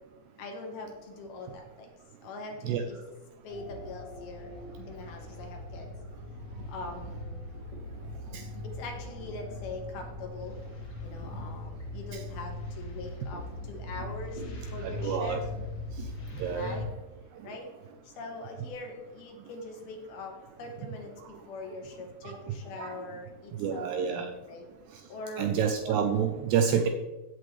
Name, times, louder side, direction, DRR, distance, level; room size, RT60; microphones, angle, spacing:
voice 1, 0.4-1.9 2.2-3.0 3.4-4.5 4.8-5.9 6.7-7.5 8.6-10.6 11.0-15.4 16.5-16.9 17.4-17.7 18.0-25.5 25.8-26.0, left 2 dB, 65° left, 2 dB, 2.9 m, -42 dB
sound 1, 3.5-16.8, left 2 dB, 40° left, 1.7 m, -40 dB
voice 2, 14.8-15.4 16.0-16.1 16.3-16.8 17.4-17.5 21.2-21.3 22.2-23.0 23.5-24.3 25.4-26.9, right 7 dB, 80° right, 5 dB, 2.4 m, -29 dB
15.5 x 7.7 x 3.2 m, 1.1 s
omnidirectional pair, 5.3 m